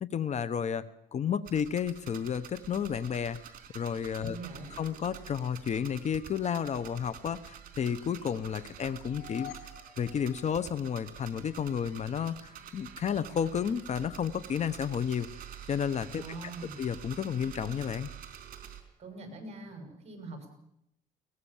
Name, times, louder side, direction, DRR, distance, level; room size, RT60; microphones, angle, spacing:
voice 1, 0.0-3.4 3.7-4.4 4.8-9.5 10.0-15.3 15.7-16.2 16.8-18.1, left 8 dB, 40° left, 15 dB, 1.0 m, -32 dB
sound 1, 1.5-18.8, right 9 dB, 55° right, 3.8 m, -48 dB
voice 2, 4.2-4.7 16.2-16.7 19.0-20.5, right 2 dB, 40° right, 5 dB, 7.1 m, -43 dB
sound 2, 8.9-11.2, left 13 dB, 90° left, 3.7 m, -49 dB
22.5 x 19.5 x 7.3 m, 0.77 s
cardioid pair, 110°, 17 cm